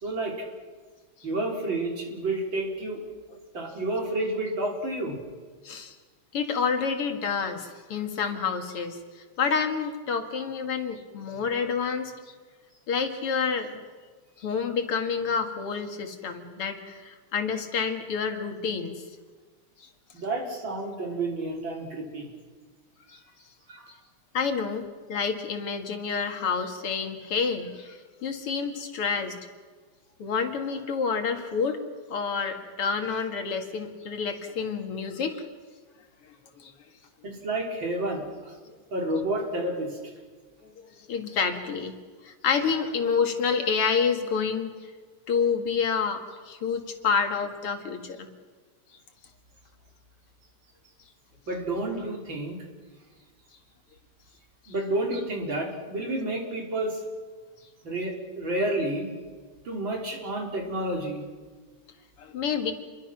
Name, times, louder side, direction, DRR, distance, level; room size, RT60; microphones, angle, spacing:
voice 1, 0.0-0.5 1.2-3.0 3.5-5.2 20.1-22.3 23.7-23.9 37.2-38.5 38.9-40.0 51.5-52.6 54.7-57.0 57.8-59.1 59.6-61.2, right 2 dB, 60° right, 0 dB, 4.7 m, -30 dB
voice 2, 5.6-6.0 6.3-12.1 12.9-13.8 14.4-19.0 23.1-23.2 24.3-29.4 30.2-31.8 32.1-35.4 36.6-36.7 40.6-41.9 42.2-44.7 45.3-48.3 62.2-62.7, left 5 dB, 85° left, 5 dB, 3.0 m, -28 dB
28.5 x 22.5 x 6.0 m, 1.4 s
omnidirectional pair, 2.4 m